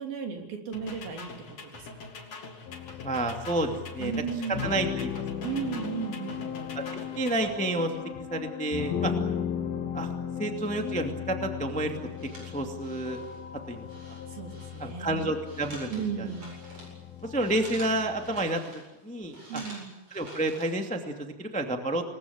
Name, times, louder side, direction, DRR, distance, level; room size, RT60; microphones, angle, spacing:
voice 1, 0.0-2.1 4.0-4.7 5.4-6.5 9.0-9.3 14.3-15.3 15.9-16.5 19.5-19.9, right 6 dB, 75° right, 3 dB, 5.1 m, -35 dB
sound 1, 0.7-7.6, left 3 dB, 45° left, 4.1 m, -44 dB
sound 2, 2.7-18.5, left 8 dB, 75° left, 3.2 m, -37 dB
voice 2, 3.0-4.1 4.5-5.2 6.7-7.9 8.3-9.1 9.9-10.1 10.4-12.0 12.5-13.2 13.7-13.9 14.8-15.9 17.2-18.6 19.0-19.6 20.1-22.1, right 1 dB, 5° left, 4 dB, 1.5 m, -30 dB
sound 3, 11.7-21.0, right 1 dB, 40° right, 9.1 m, -49 dB
28.5 x 20.5 x 8.8 m, 1.0 s
omnidirectional pair, 4.3 m